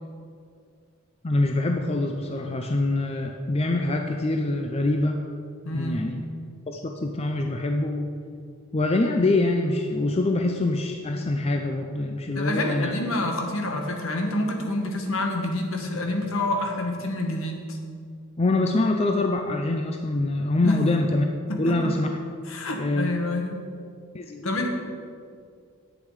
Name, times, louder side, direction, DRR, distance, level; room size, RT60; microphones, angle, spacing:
voice 1, 1.2-5.2 5.7-6.2 6.7-8.1 8.7-12.9 18.4-21.3 21.6-22.1 22.8-23.2 24.1-24.6, left 2 dB, 30° left, 4 dB, 0.5 m, -25 dB
voice 2, 5.6-6.1 12.3-17.8 20.6-20.8 21.5-21.9 22.5-23.6 24.4-24.7, left 1 dB, 65° left, 2 dB, 1.5 m, -28 dB
10.5 x 8.2 x 4.9 m, 2.3 s
head